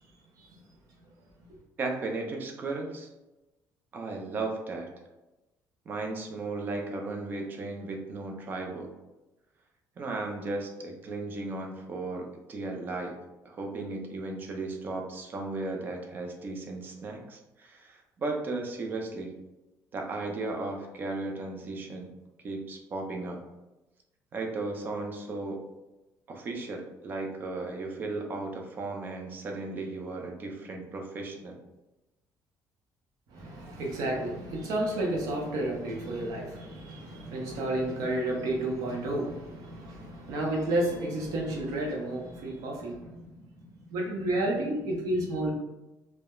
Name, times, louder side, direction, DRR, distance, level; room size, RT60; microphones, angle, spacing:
voice 1, 1.8-3.1 3.9-4.9 5.9-8.9 10.0-13.1 13.4-19.3 19.9-22.1 22.4-23.4 24.3-25.6 26.3-31.6, right 3 dB, 30° right, 2 dB, 0.4 m, -35 dB
voice 2, 33.3-43.2 43.6-45.5, right 1 dB, 65° right, 0 dB, 0.6 m, -31 dB
2.2 x 2.0 x 2.9 m, 1.0 s
cardioid pair, 170°, 7 cm